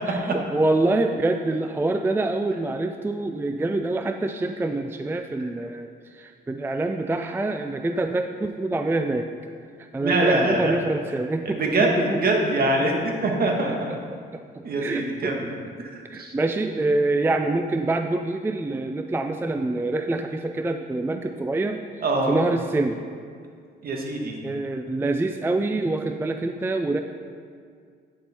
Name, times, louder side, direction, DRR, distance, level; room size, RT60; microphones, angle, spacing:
voice 1, 0.1-9.3 9.8-12.2 12.8-12.9 13.7-13.8 14.1-15.5 16.1-23.0 24.4-27.0, right 2 dB, 10° right, 6 dB, 0.4 m, -26 dB
voice 2, 10.0-10.8 11.4-13.9 14.6-15.5 15.8-16.3 22.0-22.4 23.8-24.4, right 2 dB, 50° right, 0 dB, 1.7 m, -24 dB
9.2 x 6.9 x 4.3 m, 2.1 s
cardioid pair, 90°, 20 cm